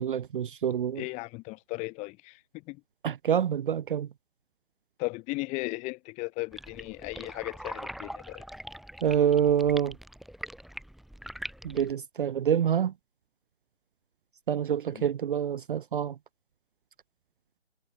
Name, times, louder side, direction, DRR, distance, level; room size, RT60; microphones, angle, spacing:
voice 1, 0.0-1.0 3.0-4.1 9.0-10.0 11.6-12.9 14.5-16.2, right 9 dB, 45° right, 0.6 m, -26 dB
voice 2, 1.0-2.4 2.7-2.8 5.0-8.4 14.9-15.1, left 24 dB, 20° left, 2.3 m, -36 dB
sound 1, 6.5-11.9, equal, ahead, 4.4 m, -42 dB
figure-of-eight pair, 140°, 35 cm